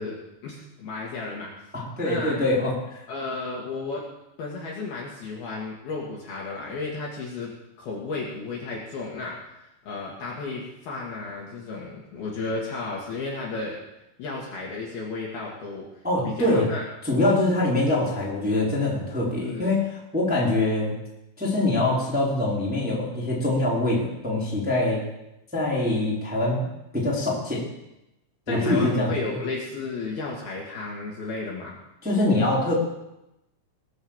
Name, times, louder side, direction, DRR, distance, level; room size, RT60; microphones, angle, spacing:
voice 1, 0.0-1.5 2.0-2.4 3.1-4.0 4.4-7.5 7.8-13.8 14.2-15.9 16.2-16.8 19.4-19.7 28.5-31.8, left 3 dB, 55° left, -3 dB, 3.4 m, -33 dB
voice 2, 1.7-2.7 16.0-16.7 17.0-20.9 21.4-25.0 25.5-26.7 26.9-27.6 28.5-29.4 32.0-32.7, left 2 dB, ahead, -5 dB, 3.1 m, -24 dB
20.5 x 7.2 x 7.3 m, 0.89 s
omnidirectional pair, 5.9 m